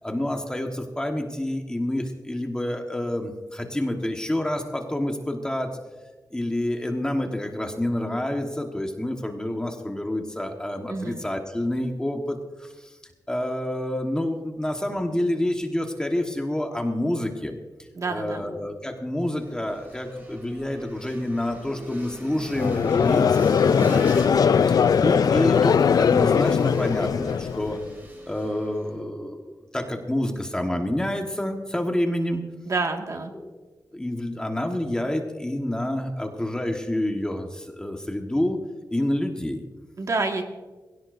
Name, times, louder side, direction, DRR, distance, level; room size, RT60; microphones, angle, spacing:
voice 1, 0.0-5.7 6.3-13.0 13.3-17.6 18.1-24.1 24.7-27.8 28.3-32.4 33.3-33.5 33.9-38.6 38.9-39.6, left 1 dB, 10° left, 3 dB, 1.3 m, -28 dB
voice 2, 18.0-18.4 32.7-33.3 40.0-40.4, right 3 dB, 50° right, 3 dB, 1.8 m, -27 dB
sound 1, 19.2-29.0, equal, 25° right, 4.2 m, -41 dB
Conversation / Crowd, 22.5-27.8, left 6 dB, 60° left, 0.3 m, -20 dB
21.5 x 17.0 x 2.6 m, 1.3 s
wide cardioid pair, 145°, 7 cm